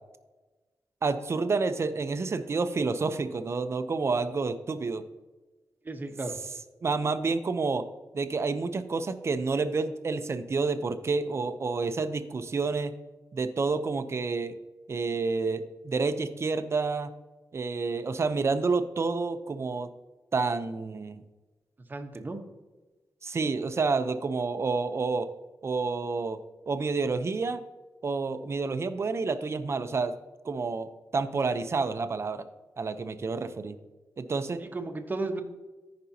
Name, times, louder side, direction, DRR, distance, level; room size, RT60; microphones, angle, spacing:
voice 1, 1.0-5.1 6.8-7.9 8.1-12.9 13.3-14.6 14.9-17.1 17.5-19.9 20.3-21.2 23.2-25.3 25.6-26.4 26.7-27.6 28.0-30.1 30.4-32.5 32.8-33.8 34.2-34.6, right 4 dB, 45° right, 10 dB, 0.7 m, -29 dB
voice 2, 5.8-6.4 21.9-22.4 34.6-35.4, right 2 dB, 30° right, 5 dB, 1.0 m, -34 dB
14.5 x 5.2 x 2.8 m, 1.2 s
cardioid pair, 80°, 6 cm